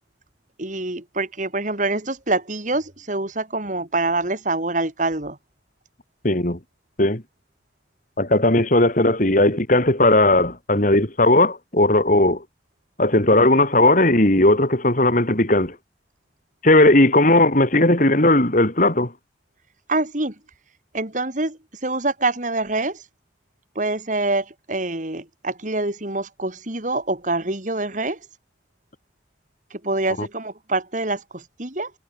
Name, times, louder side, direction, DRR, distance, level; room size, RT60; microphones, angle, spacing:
voice 1, 0.6-5.4 19.9-20.3 20.9-23.0 23.7-28.2 29.7-31.9, right 2 dB, 45° right, 3.4 m, -25 dB
voice 2, 6.2-6.6 7.0-7.2 8.2-12.4 13.0-15.8 16.6-19.1 30.2-30.3, left 1 dB, 45° left, 3.8 m, -17 dB
head